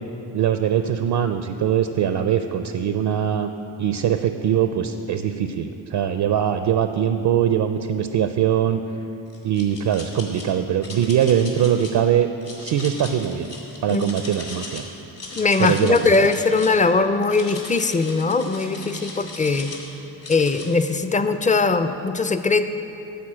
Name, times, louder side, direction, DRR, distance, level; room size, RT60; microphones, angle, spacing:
voice 1, 0.3-3.5 3.8-8.8 9.4-12.3 12.6-13.5 13.8-14.8 15.6-16.1, right 9 dB, 60° right, 8 dB, 0.5 m, -22 dB
sound 1, 9.3-10.4 10.8-11.9 12.4-14.8 15.1-16.8 17.2-19.9 20.2-20.7, left 3 dB, 65° left, 1.9 m, -37 dB
voice 2, 15.3-19.7 20.3-22.7, left 3 dB, 20° left, 10 dB, 0.4 m, -20 dB
9.4 x 4.2 x 7.4 m, 2.9 s
cardioid pair, 50°, 46 cm